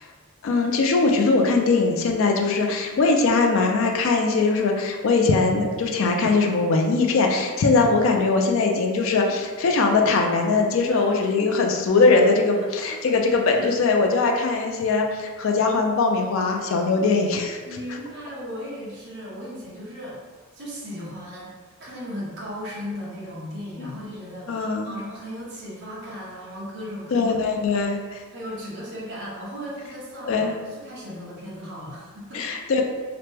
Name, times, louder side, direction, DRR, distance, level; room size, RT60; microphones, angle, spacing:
voice 1, 0.4-17.6 23.8-23.9 24.5-24.9 27.1-28.2 30.3-30.5 32.3-32.8, left 3 dB, 60° left, 2 dB, 0.3 m, -21 dB
voice 2, 8.0-8.5 10.9-11.1 11.4-11.5 12.8-12.9 17.6-20.2 20.5-21.5 21.8-27.4 27.8-27.9 28.3-32.5, equal, 50° right, -7 dB, 0.8 m, -36 dB
2.9 x 2.1 x 3.3 m, 1.4 s
head